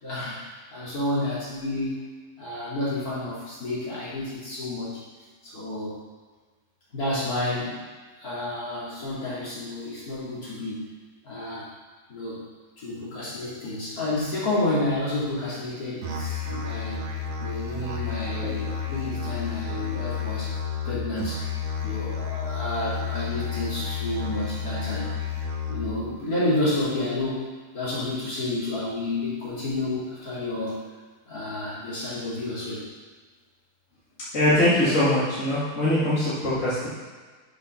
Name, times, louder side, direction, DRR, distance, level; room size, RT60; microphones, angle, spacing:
voice 1, 0.0-2.0 2.4-5.0 5.4-6.0 6.9-7.8 8.2-10.9 11.2-11.7 12.1-12.5 12.8-17.0 17.4-20.5 20.8-21.4 21.8-25.1 25.7-27.4 27.7-30.8 31.3-32.8, left 2 dB, 65° left, -9 dB, 3.1 m, -30 dB
Musical instrument, 16.0-26.0, left 6 dB, 75° right, 1.4 m, -31 dB
voice 2, 34.3-36.9, left 1 dB, 50° left, -10 dB, 2.4 m, -22 dB
6.7 x 5.5 x 5.8 m, 1.4 s
omnidirectional pair, 1.7 m